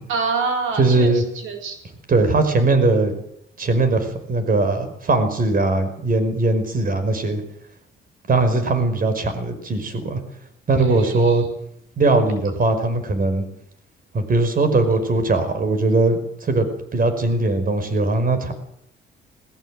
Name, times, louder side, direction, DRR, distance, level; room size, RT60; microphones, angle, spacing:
voice 1, 0.1-1.8 10.8-11.4, right 4 dB, 80° right, 3 dB, 4.6 m, -26 dB
voice 2, 0.8-1.2 2.1-3.1 3.6-7.4 8.3-10.2 10.7-11.4 12.0-13.4 14.1-18.5, right 2 dB, 45° right, 8 dB, 5.3 m, -20 dB
21.0 x 21.0 x 7.7 m, 0.71 s
cardioid pair, 90°, 20 cm